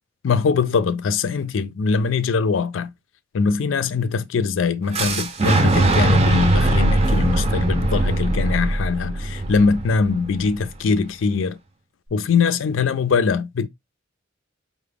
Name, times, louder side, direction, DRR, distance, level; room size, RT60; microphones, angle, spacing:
voice 1, 0.2-2.9 3.3-11.6 12.1-13.7, left 5 dB, 90° left, 0.4 m, -22 dB
Fire / Explosion, 4.9-10.8, right 2 dB, 35° right, 0.5 m, -20 dB
4.7 x 2.1 x 3.4 m
head